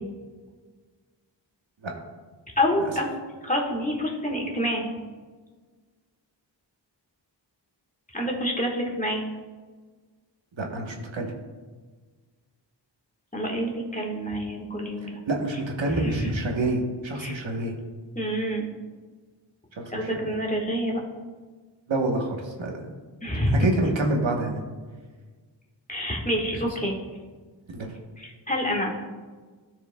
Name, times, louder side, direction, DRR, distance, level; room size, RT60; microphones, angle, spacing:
voice 1, 2.6-3.1 3.4-4.9 8.1-9.2 13.3-15.2 15.9-16.3 17.2-17.4 18.1-18.7 19.9-21.0 23.2-23.6 23.8-24.0 25.9-27.0 28.2-29.0, equal, 15° left, -1 dB, 1.4 m, -27 dB
voice 2, 10.6-11.3 15.0-17.7 19.8-20.1 21.9-22.8 23.6-24.6 27.7-27.9, right 2 dB, 85° right, 1 dB, 1.1 m, -27 dB
14.0 x 4.9 x 2.2 m, 1.4 s
wide cardioid pair, 75°, 45 cm